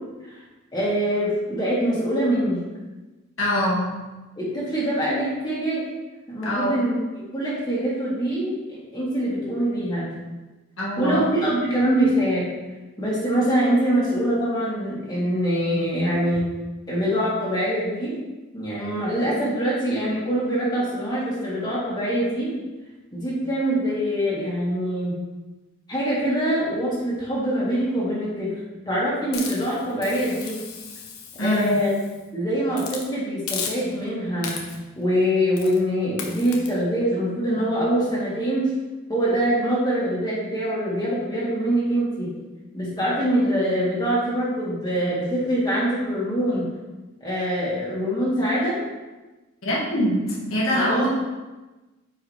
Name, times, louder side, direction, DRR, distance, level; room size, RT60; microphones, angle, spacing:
voice 1, 0.7-2.6 4.4-5.9 6.3-10.1 11.0-12.5 13.0-16.4 16.9-18.1 18.5-22.5 23.1-25.1 25.9-30.6 31.4-32.0 32.3-34.5 35.0-38.6 39.1-42.3 42.7-46.6 47.2-48.8 50.7-51.1, equal, 20° left, -8 dB, 1.8 m, -24 dB
voice 2, 3.4-3.9 6.4-6.8 10.8-11.2 31.4-31.8 49.6-51.1, equal, 65° left, -6 dB, 1.7 m, -23 dB
Hiss, 29.3-32.2 32.7-33.1 33.5-34.1 34.4-34.9 35.6-35.8 36.2-36.7, left 6 dB, 85° left, 1.1 m, -35 dB
9.5 x 4.7 x 3.3 m, 1.1 s
head